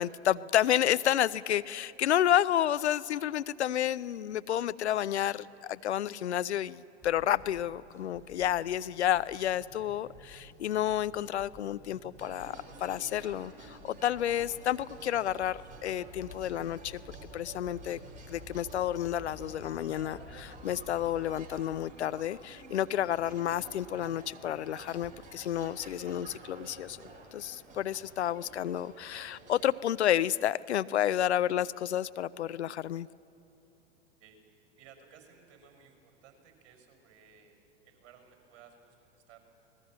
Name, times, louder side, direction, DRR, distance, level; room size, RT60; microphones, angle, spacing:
voice 1, 0.0-17.0 17.3-18.0 18.3-27.0 27.3-33.1, left 11 dB, 70° left, 17 dB, 0.6 m, -30 dB
sound 1, 7.0-21.2, equal, 5° left, 4.6 m, -55 dB
sound 2, 12.2-29.7, right 3 dB, 20° right, 3.9 m, -51 dB
sound 3, 16.0-21.6, left 3 dB, 25° left, 5.4 m, -51 dB
voice 2, 34.2-37.6 37.8-39.4, right 7 dB, 40° right, 4 dB, 5.6 m, -58 dB
26.5 x 19.5 x 7.5 m, 2.8 s
figure-of-eight pair, 95°, 35 cm